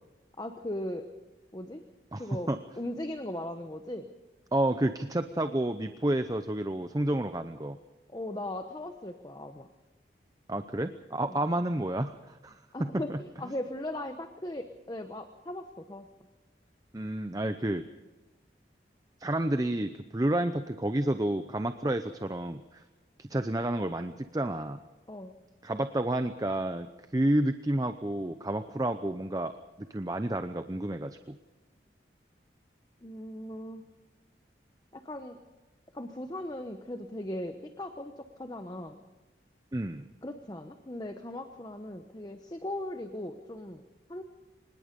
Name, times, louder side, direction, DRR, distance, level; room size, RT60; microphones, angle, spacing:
voice 1, 0.4-1.1 1.5-1.8 2.2-2.5 2.8-4.1 8.1-9.7 11.3-11.4 12.7-16.1 25.1-25.4 33.0-33.8 34.9-35.4 35.9-39.0 40.2-43.8 44.1-44.2, left 1 dB, 20° left, 7 dB, 1.0 m, -38 dB
voice 2, 2.1-2.6 4.5-7.8 10.5-13.2 16.9-17.8 19.2-22.8 23.2-24.8 25.6-29.5 29.8-31.4 39.7-40.1, right 1 dB, 20° right, 9 dB, 0.6 m, -30 dB
24.5 x 20.0 x 5.3 m, 1.1 s
head